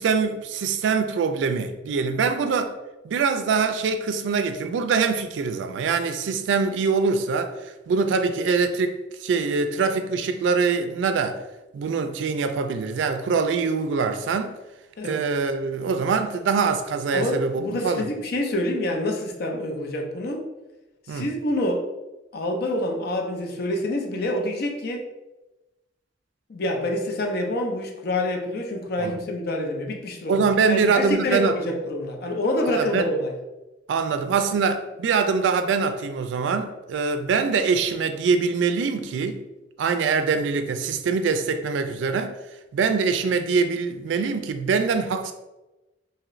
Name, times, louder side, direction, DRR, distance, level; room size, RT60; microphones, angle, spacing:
voice 1, 0.0-2.7 3.0-7.5 7.9-11.4 11.7-14.6 15.0-18.1 21.1-21.3 29.0-29.2 30.3-31.6 32.7-33.1 33.9-39.4 39.8-42.3 42.7-45.3, right 5 dB, 85° right, 9 dB, 0.3 m, -23 dB
voice 2, 17.1-20.4 21.1-21.9 22.3-25.0 26.5-33.3, left 1 dB, 60° left, 2 dB, 0.5 m, -27 dB
2.7 x 2.4 x 3.0 m, 1.0 s
head